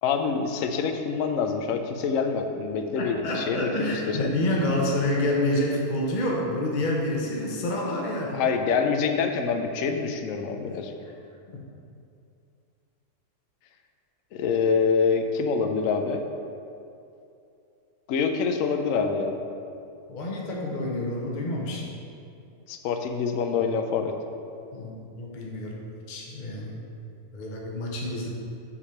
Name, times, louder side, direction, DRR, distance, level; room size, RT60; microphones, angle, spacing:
voice 1, 0.0-4.3 8.3-10.9 14.3-16.2 18.1-19.4 22.7-24.1, left 5 dB, 70° left, 5 dB, 0.8 m, -26 dB
voice 2, 3.0-8.4 10.6-10.8 11.5-11.6 20.1-21.9 24.7-25.8 26.1-26.8 27.3-28.3, left 1 dB, 40° left, -2 dB, 0.7 m, -28 dB
7.3 x 3.3 x 5.7 m, 2.6 s
omnidirectional pair, 1.7 m